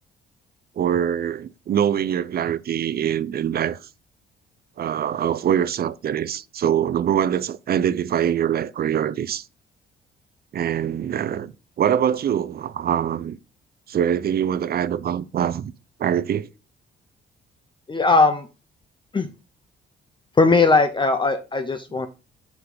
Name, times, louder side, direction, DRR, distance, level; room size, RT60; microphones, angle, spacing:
voice 1, 0.8-3.8 4.8-9.4 10.5-13.4 13.9-15.7 16.0-16.5, right 9 dB, 50° right, 0.6 m, -23 dB
voice 2, 17.9-18.5 19.1-19.3 20.4-22.1, left 3 dB, 25° left, 0.7 m, -18 dB
5.6 x 5.6 x 3.8 m
cardioid pair, 90°, 20 cm